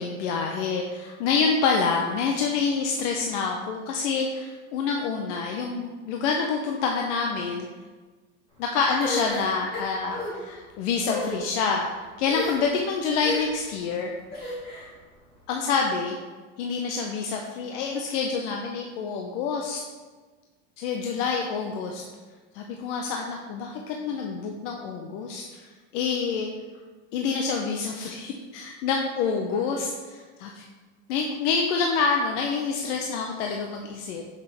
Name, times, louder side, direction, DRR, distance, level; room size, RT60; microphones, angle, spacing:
voice 1, 0.0-7.7 8.6-14.1 15.5-16.2 16.6-19.8 20.8-22.0 22.5-25.6 25.9-26.5 27.1-30.6 31.1-34.2, left 5 dB, 65° left, 1 dB, 0.7 m, -27 dB
sound 1, 9.0-10.3 11.0-11.4 12.3-12.8 13.2-13.6 14.3-14.9, left 3 dB, 25° left, 2.0 m, -32 dB
5.9 x 3.3 x 5.8 m, 1.3 s
supercardioid pair, 160°, 38 cm